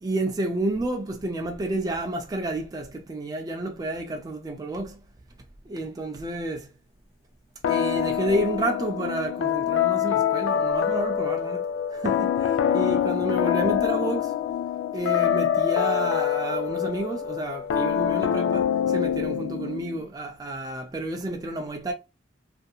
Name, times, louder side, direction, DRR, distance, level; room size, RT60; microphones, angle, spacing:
voice 1, 0.0-5.0 5.7-6.7 7.7-11.7 11.9-14.3 14.9-21.9, right 1 dB, 20° right, 0.3 m, -30 dB
sound 1, 7.6-20.0, left 9 dB, 85° left, 0.3 m, -25 dB
2.7 x 2.5 x 2.2 m
head